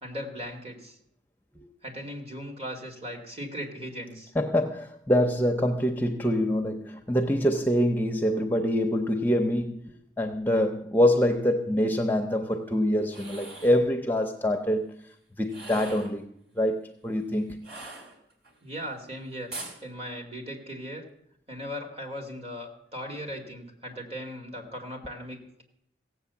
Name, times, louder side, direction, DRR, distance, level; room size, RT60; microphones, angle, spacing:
voice 1, 0.0-1.0 1.8-4.3 18.6-19.5 19.8-21.0 21.5-25.6, equal, 35° right, 2.4 m, -38 dB
voice 2, 4.3-9.8 10.2-15.0 15.4-17.6, equal, 10° left, 0.6 m, -25 dB
sound 1, 13.0-13.8 15.4-16.2 17.6-18.5 19.5-19.8, right 2 dB, 65° right, 3.2 m, -42 dB
16.0 x 7.9 x 7.0 m
head